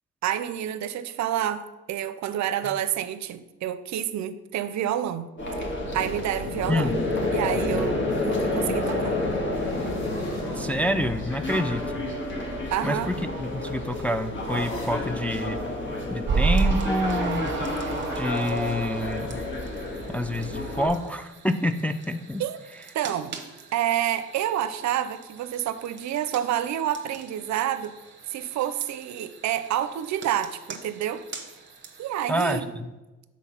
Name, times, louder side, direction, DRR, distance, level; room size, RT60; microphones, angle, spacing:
voice 1, 0.2-5.3 5.6-7.0 7.3-9.2 12.7-13.1 22.4-22.6 22.9-23.4 23.7-27.9 28.3-31.2 32.0-32.7, right 11 dB, 65° right, 13 dB, 0.5 m, -28 dB
sound 1, 5.4-20.9, left 2 dB, 40° left, 1.6 m, -30 dB
voice 2, 6.7-7.0 10.5-12.0 12.8-15.6 16.1-17.7 18.1-19.4 20.1-22.4 32.3-32.6, left 1 dB, 5° left, 7 dB, 0.3 m, -27 dB
sound 2, 9.5-11.3 12.5-15.2 16.9-19.2, left 1 dB, 65° left, 1.8 m, -45 dB
sound 3, 16.3-32.6, right 4 dB, 40° right, 1.1 m, -34 dB
6.3 x 4.2 x 5.6 m, 1.1 s
cardioid pair, 90°, 30 cm